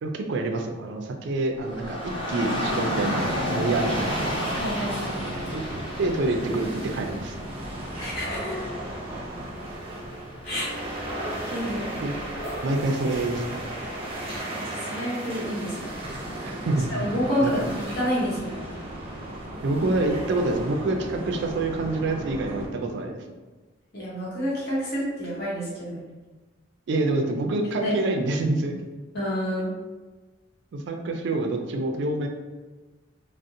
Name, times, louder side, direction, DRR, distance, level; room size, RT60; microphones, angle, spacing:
voice 1, 0.0-4.4 5.5-7.4 12.0-12.1 12.6-13.6 16.4-16.9 17.4-17.5 19.6-23.2 26.9-28.8 30.7-32.3, right 2 dB, 65° right, 4 dB, 0.3 m, -27 dB
Dog / Rain, 1.6-13.8, equal, 30° left, 0.6 m, -33 dB
sound 1, 3.7-22.7, right 1 dB, 30° right, 0.6 m, -35 dB
voice 2, 4.5-5.2 8.0-8.7 10.4-10.7 11.5-11.9 14.5-15.9 16.9-18.8 23.9-26.0 27.8-27.9 29.1-29.7, equal, 60° left, -6 dB, 0.9 m, -29 dB
2.5 x 2.0 x 2.6 m, 1.3 s
head